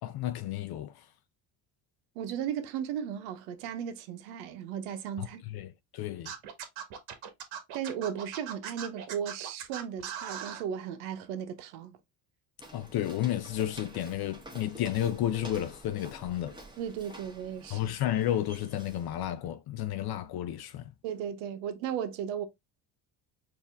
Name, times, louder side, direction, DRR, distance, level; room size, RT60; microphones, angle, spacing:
voice 1, 0.0-1.1 5.2-6.3 12.7-16.6 17.7-20.9, left 12 dB, 50° left, 0.5 m, -32 dB
voice 2, 2.1-5.4 7.7-12.0 16.8-17.8 21.0-22.5, right 8 dB, 85° right, 0.9 m, -36 dB
Scratching (performance technique), 6.3-10.6, right 9 dB, 70° right, 1.2 m, -39 dB
Walk footsteps, 12.6-19.3, right 1 dB, 10° right, 1.3 m, -49 dB
4.3 x 2.8 x 3.4 m
supercardioid pair, 75°, 49 cm